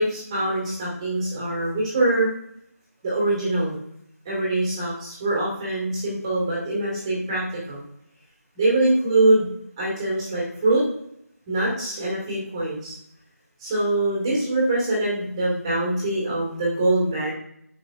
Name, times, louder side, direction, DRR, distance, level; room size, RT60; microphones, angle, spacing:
voice 1, 0.0-2.3 3.0-3.8 4.2-7.8 8.6-9.5 9.8-10.8 11.5-12.9 13.6-17.3, right 2 dB, 15° right, -5 dB, 2.2 m, -23 dB
8.0 x 5.6 x 2.6 m, 0.72 s
figure-of-eight pair, 165°, 9 cm